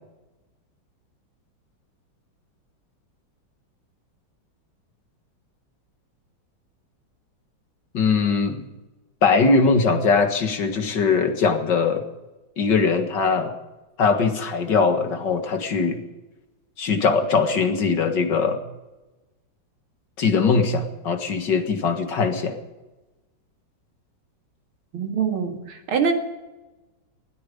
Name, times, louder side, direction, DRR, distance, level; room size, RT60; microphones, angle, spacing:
voice 1, 7.9-8.7 9.2-12.1 12.6-13.5 14.0-16.0 16.8-18.6 20.2-22.6, left 4 dB, 60° left, 7 dB, 2.2 m, -21 dB
voice 2, 24.9-26.1, right 6 dB, 90° right, 5 dB, 2.8 m, -24 dB
19.5 x 13.5 x 5.2 m, 1.1 s
omnidirectional pair, 2.2 m